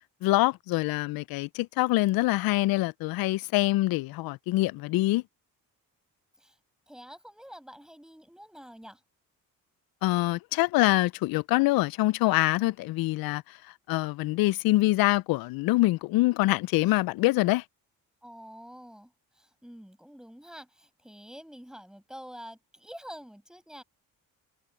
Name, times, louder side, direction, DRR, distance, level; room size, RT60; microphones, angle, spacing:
voice 1, 0.2-5.2 10.0-13.4 13.9-17.6, left 19 dB, 80° left, 0.5 m, -25 dB
voice 2, 6.9-9.0 18.2-23.8, equal, ahead, 7.8 m, -47 dB
cardioid pair, 75°, 35 cm